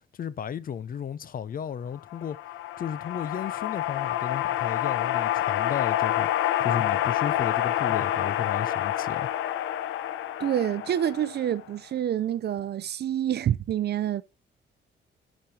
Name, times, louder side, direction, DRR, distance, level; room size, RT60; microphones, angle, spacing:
voice 1, 0.1-2.4 2.8-6.3 6.6-9.3, left 8 dB, 45° left, 0.6 m, -34 dB
sound 1, 2.1-11.6, left 12 dB, 80° left, 0.7 m, -28 dB
voice 2, 10.4-14.2, right 10 dB, 55° right, 0.6 m, -27 dB
12.5 x 5.2 x 2.8 m
cardioid pair, 90°, 20 cm